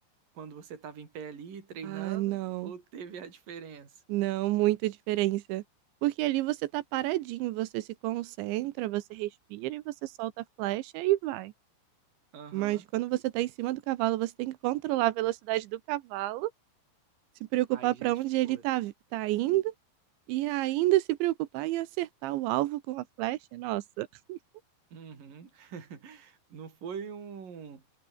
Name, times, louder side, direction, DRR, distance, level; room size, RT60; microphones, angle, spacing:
voice 1, 0.3-4.0 12.3-12.8 17.7-18.1 18.4-18.6 24.9-27.8, right 6 dB, 45° right, 5.9 m, -43 dB
voice 2, 1.8-2.7 4.1-5.6 6.0-11.5 12.5-16.5 17.5-19.7 20.3-24.4, right 17 dB, 80° right, 3.0 m, -30 dB
omnidirectional pair, 5.6 m